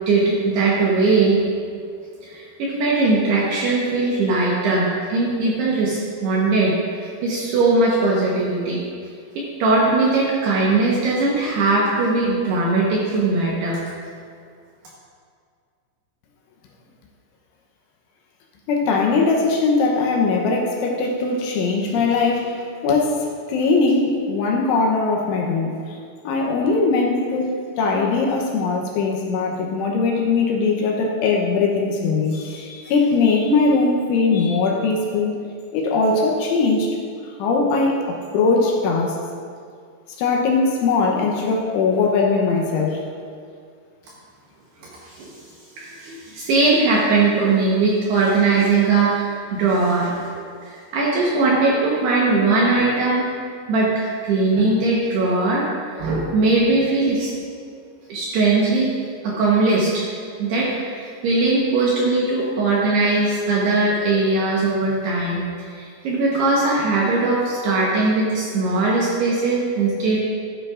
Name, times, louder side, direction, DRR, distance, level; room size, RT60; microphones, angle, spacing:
voice 1, 0.1-1.4 2.2-8.8 9.4-13.8 45.0-45.3 45.8-50.2 50.6-53.3 53.7-57.3 58.1-58.9 59.2-60.1 60.4-70.2, right 3 dB, 75° right, -5 dB, 2.6 m, -20 dB
voice 2, 18.7-22.6 22.8-26.0 26.2-35.4 35.7-37.0 37.4-39.2 40.2-43.0, left 4 dB, 80° left, 0 dB, 3.1 m, -20 dB
14.0 x 9.9 x 2.5 m, 2.2 s
omnidirectional pair, 5.9 m